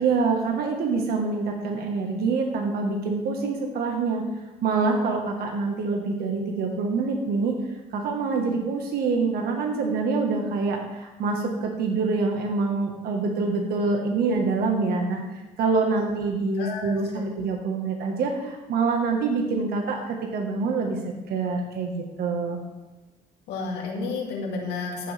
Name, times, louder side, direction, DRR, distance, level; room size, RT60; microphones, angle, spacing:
voice 1, 0.0-4.2 4.6-7.6 7.9-15.2 15.6-21.0 21.3-22.6, right 4 dB, 65° right, 2 dB, 1.5 m, -25 dB
voice 2, 16.6-17.2 23.5-25.1, left 3 dB, 85° left, -2 dB, 2.3 m, -31 dB
15.0 x 6.9 x 3.4 m, 1.1 s
cardioid pair, 110°, 17 cm